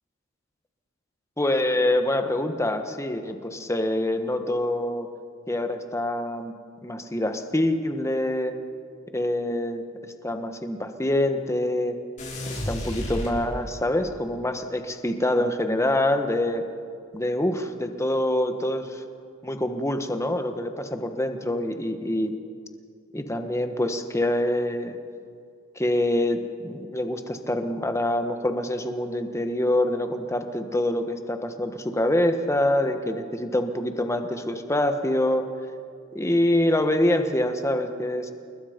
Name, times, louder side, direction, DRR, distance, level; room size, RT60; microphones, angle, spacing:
voice 1, 1.4-5.1 5.5-6.5 6.8-8.5 9.1-9.8 10.2-12.0 12.7-16.6 17.1-19.0 19.4-22.3 23.1-25.0 25.8-35.5 36.1-38.3, left 1 dB, 15° left, 7 dB, 1.4 m, -25 dB
sound 1, 12.2-14.0, left 1 dB, 40° left, 5.2 m, -32 dB
28.5 x 21.0 x 5.2 m, 2.3 s
head